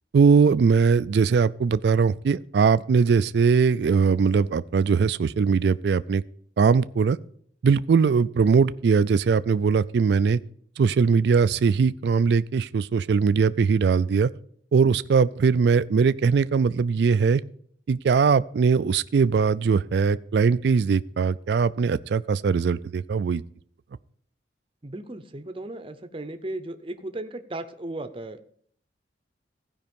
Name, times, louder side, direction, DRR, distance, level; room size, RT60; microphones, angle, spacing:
voice 1, 0.1-6.2 6.6-7.2 7.6-10.4 10.8-14.3 14.7-17.4 17.9-23.4, right 5 dB, 60° right, 0.3 m, -21 dB
voice 2, 24.8-28.4, right 2 dB, 30° right, 0.7 m, -36 dB
15.5 x 5.3 x 5.3 m
head